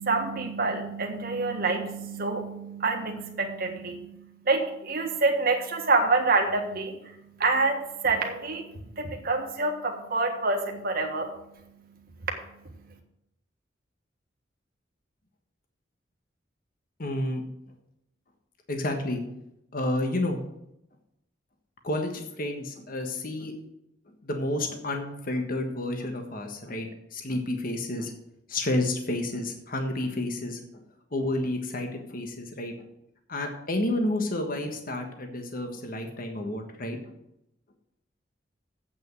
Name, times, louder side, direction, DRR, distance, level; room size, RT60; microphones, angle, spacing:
voice 1, 0.0-7.0 7.4-8.6 9.0-11.3, right 3 dB, 55° right, 2 dB, 1.6 m, -27 dB
voice 2, 17.0-17.4 18.7-19.2 19.7-20.4 21.8-23.5 24.2-28.1 28.5-30.8 31.1-32.9 33.3-37.2, left 1 dB, 50° left, 4 dB, 1.4 m, -30 dB
8.3 x 6.5 x 7.6 m, 0.81 s
head